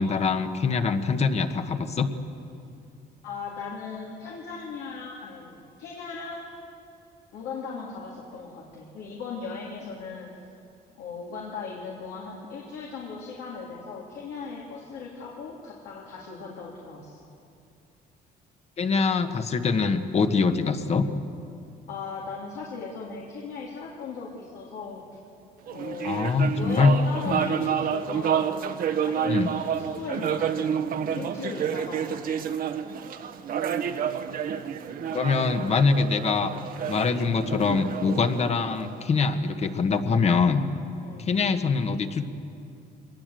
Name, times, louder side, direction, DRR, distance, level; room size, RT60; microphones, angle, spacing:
voice 1, 0.0-2.1 18.8-21.1 26.0-26.9 27.2-27.4 29.2-29.5 35.1-36.5 36.9-40.6 41.2-42.2, left 4 dB, 40° left, 8 dB, 1.5 m, -24 dB
voice 2, 3.2-6.5 7.3-10.3 11.0-17.3 21.9-25.0 25.7-28.5 29.0-32.3 41.0-41.3, left 5 dB, 80° left, -3 dB, 3.2 m, -38 dB
sound 1, 25.7-39.4, right 8 dB, 60° right, 1.2 m, -29 dB
24.0 x 19.5 x 7.8 m, 2.5 s
cardioid pair, 110°, 17 cm